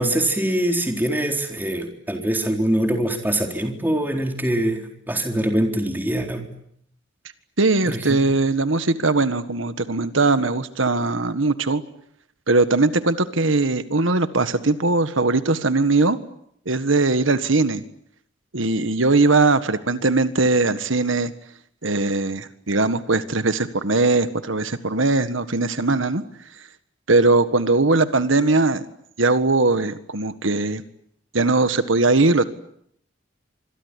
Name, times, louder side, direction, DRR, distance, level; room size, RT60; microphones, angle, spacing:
voice 1, 0.0-6.4 7.9-8.2, right 1 dB, 10° right, 4 dB, 4.0 m, -23 dB
voice 2, 7.6-11.8 12.5-16.2 16.6-17.8 18.5-21.3 21.8-26.2 27.1-28.8 29.2-30.8 31.3-32.4, right 3 dB, 80° right, 11 dB, 1.6 m, -20 dB
26.0 x 22.5 x 10.0 m, 0.70 s
head